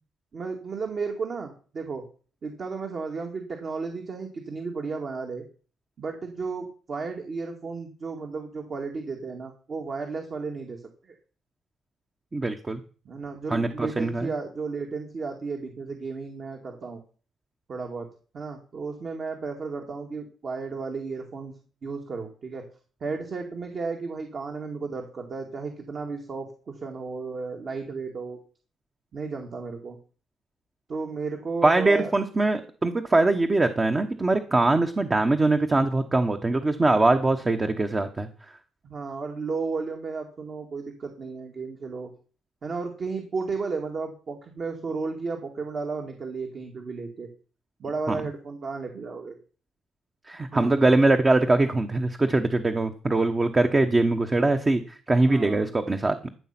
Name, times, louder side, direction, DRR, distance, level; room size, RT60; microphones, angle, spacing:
voice 1, 0.3-2.0 2.4-5.4 6.0-11.1 13.1-17.0 17.7-18.1 18.3-21.5 21.8-22.7 23.0-28.4 29.1-30.0 30.9-32.1 38.8-42.1 42.6-47.3 47.8-49.4 50.5-50.8 55.2-55.7, right 4 dB, 50° right, 2 dB, 2.3 m, -33 dB
voice 2, 12.3-12.8 13.5-14.3 31.6-38.3 48.1-48.2 50.3-56.3, right 2 dB, 25° right, 6 dB, 1.1 m, -22 dB
14.0 x 6.9 x 6.0 m, 0.40 s
cardioid pair, 90°, 0 cm